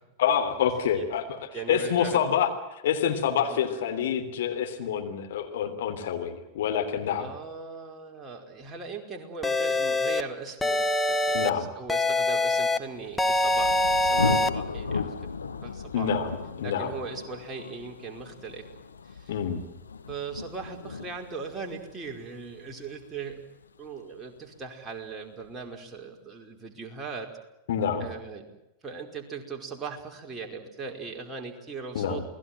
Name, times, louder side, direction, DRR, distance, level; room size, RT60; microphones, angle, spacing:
voice 1, 0.2-1.2 1.5-7.3 11.3-11.7 15.9-16.9 19.3-19.6 27.7-28.1 31.9-32.2, left 8 dB, 60° left, 5 dB, 3.3 m, -27 dB
voice 2, 1.5-2.2 3.5-3.6 7.2-15.3 15.6-16.2 16.6-18.7 19.1-19.3 20.1-23.4 23.8-27.3 28.0-28.5 28.8-32.2, right 4 dB, 20° right, 2 dB, 5.0 m, -39 dB
sound 1, 9.4-10.2 10.6-11.5 11.9-12.8 13.2-14.5, left 2 dB, 5° left, 1.3 m, -24 dB
Thunder, 12.8-24.4, left 4 dB, 75° left, 1.3 m, -36 dB
28.5 x 20.0 x 7.7 m, 0.92 s
figure-of-eight pair, 90°, 0 cm